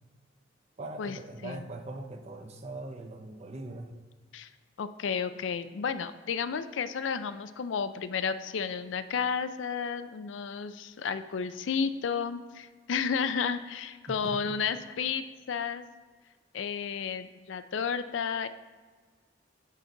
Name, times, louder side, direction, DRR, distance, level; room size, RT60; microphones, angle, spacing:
voice 1, 0.8-3.9 14.1-14.6, right 2 dB, 35° right, 5 dB, 0.6 m, -41 dB
voice 2, 4.8-15.8 16.5-18.5, left 6 dB, 80° left, 12 dB, 0.4 m, -32 dB
7.3 x 5.9 x 3.9 m, 1.5 s
head